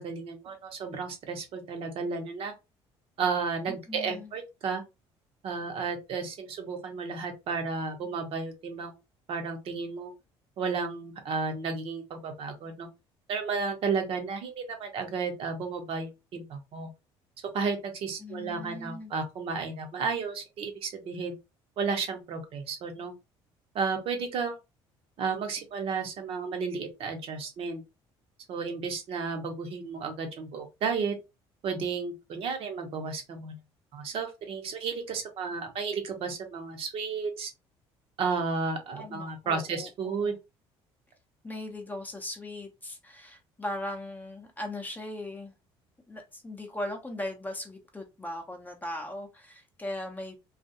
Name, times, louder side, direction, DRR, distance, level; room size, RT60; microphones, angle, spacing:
voice 1, 0.0-2.5 3.2-4.8 5.4-8.9 9.3-10.1 10.6-12.9 13.3-16.9 17.5-21.4 21.8-23.1 23.7-24.6 25.2-27.8 28.5-31.1 31.6-33.6 33.9-37.5 38.2-40.3, right 5 dB, 60° right, 0.9 m, -33 dB
voice 2, 3.7-4.3 18.2-19.1 39.0-40.4 41.4-45.5 46.1-50.3, left 1 dB, 15° left, 0.6 m, -39 dB
2.4 x 2.3 x 2.6 m
cardioid pair, 105°, 11 cm